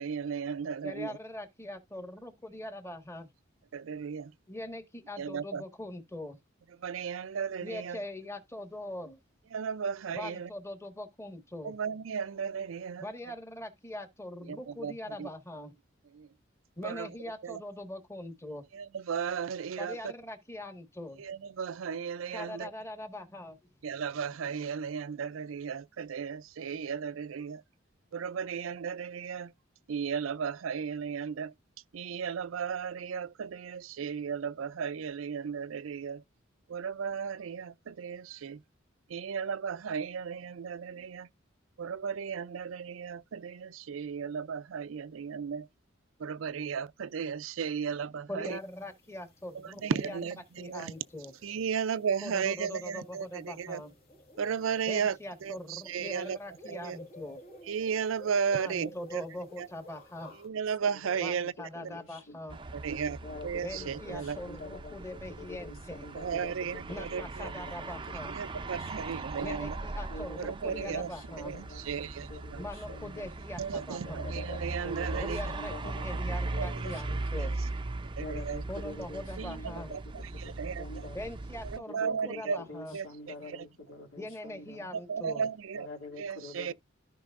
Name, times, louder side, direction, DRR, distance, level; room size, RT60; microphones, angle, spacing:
voice 1, 0.0-1.2 3.7-4.3 5.2-5.6 6.8-8.0 9.5-10.5 11.6-13.3 14.5-15.3 16.1-16.3 16.8-17.2 17.4-17.6 18.7-20.1 21.2-22.7 23.8-27.6 28.1-29.5 29.9-31.5 31.9-36.2 36.7-38.6 39.1-41.3 41.8-45.7 46.2-48.6 49.5-50.9 51.4-53.8 54.4-56.4 56.6-57.0 57.7-59.3 59.6-59.7 60.3-61.5 61.8-61.9 62.7-64.4 66.1-67.5 68.3-69.8 70.4-71.1 71.4-72.6 73.6-75.5 76.6-77.0 77.4-77.6 78.2-78.6 79.4-80.9 81.6-82.6 82.9-83.1 83.5-83.7 84.9-85.9 86.2-86.7, right 6 dB, 75° right, 0.4 m, -35 dB
voice 2, 0.8-3.3 4.5-6.4 7.6-9.2 10.1-11.7 13.0-15.7 16.8-18.6 19.8-21.2 22.3-23.6 48.3-50.2 50.6-51.3 52.2-53.9 54.9-57.4 58.5-60.3 61.2-62.6 63.6-66.0 66.9-68.4 69.4-71.5 72.6-74.3 75.2-77.5 78.7-79.9 81.1-83.0 84.2-85.4, left 1 dB, 15° left, 1.5 m, -42 dB
sound 1, 48.5-60.5, left 1 dB, 50° left, 1.8 m, -54 dB
voice 3, 60.8-62.4 63.2-68.2 68.4-69.1 70.1-73.3 74.0-77.5 78.0-81.2 81.9-84.9 85.7-86.7, left 2 dB, 75° left, 2.5 m, -47 dB
sound 2, 62.5-81.8, right 2 dB, 25° right, 0.5 m, -39 dB
13.5 x 5.4 x 2.5 m
head